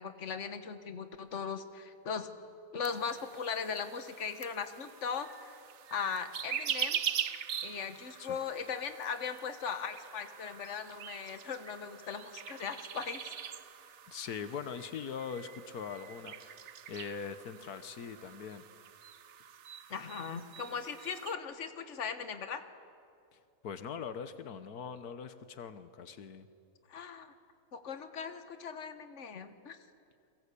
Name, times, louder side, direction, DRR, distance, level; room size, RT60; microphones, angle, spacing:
voice 1, 0.0-2.3 2.7-5.5 5.9-7.0 7.6-13.3 19.9-22.6 26.9-27.3 27.7-29.8, left 6 dB, 55° left, 9 dB, 1.7 m, -39 dB
sound 1, 2.8-21.3, right 8 dB, 55° right, 1.1 m, -43 dB
voice 2, 14.1-18.6 23.3-26.5, left 6 dB, 90° left, 11 dB, 1.7 m, -42 dB
30.0 x 22.5 x 8.5 m, 2.5 s
omnidirectional pair, 1.6 m